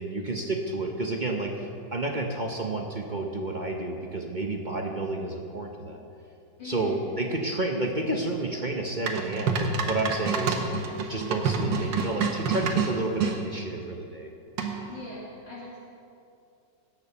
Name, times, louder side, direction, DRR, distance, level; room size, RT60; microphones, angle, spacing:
voice 1, 0.0-6.0 6.6-10.7 11.0-14.3, right 2 dB, 35° right, 1 dB, 0.7 m, -30 dB
voice 2, 6.6-7.0 14.9-15.8, left 2 dB, 80° left, -9 dB, 3.2 m, -40 dB
sound 1, 9.1-13.4 14.6-15.0, right 5 dB, 75° right, 1.7 m, -28 dB
17.5 x 6.4 x 6.9 m, 2.6 s
omnidirectional pair, 2.0 m